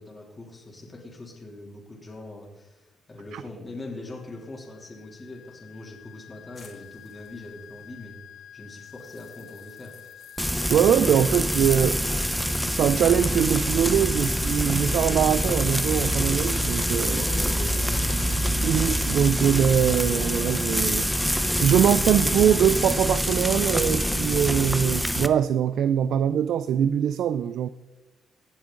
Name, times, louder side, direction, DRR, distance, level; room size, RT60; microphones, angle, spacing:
voice 1, 0.0-8.2 8.5-10.0 17.1-18.3, left 2 dB, 25° left, 2.9 m, -41 dB
sound 1, 4.1-23.2, left 10 dB, 80° left, 0.8 m, -48 dB
sound 2, 6.5-8.2 8.7-18.3, left 4 dB, 45° left, 2.8 m, -54 dB
Frying (food), 10.4-25.3, equal, ahead, 0.7 m, -25 dB
voice 2, 10.7-12.0 12.8-17.2 18.6-21.1 21.6-27.7, right 9 dB, 75° right, 0.3 m, -22 dB
17.0 x 7.0 x 3.8 m
cardioid pair, 90°, 0 cm